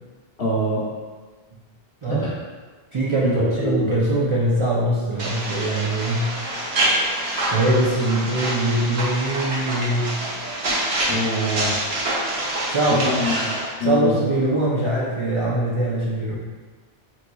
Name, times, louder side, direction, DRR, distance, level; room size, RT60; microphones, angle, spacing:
voice 1, 0.4-0.8 2.1-2.3 3.2-3.3 3.6-3.9 11.1-12.2 12.9-13.5 13.8-14.3, left 1 dB, 70° left, -5 dB, 1.0 m, -25 dB
voice 2, 2.9-6.3 7.5-10.1 12.7-13.2 13.8-16.3, right 1 dB, 45° right, -8 dB, 0.4 m, -22 dB
sound 1, 5.2-13.7, right 1 dB, 75° right, 1.0 m, -26 dB
3.8 x 3.1 x 2.2 m, 1.4 s
omnidirectional pair, 1.0 m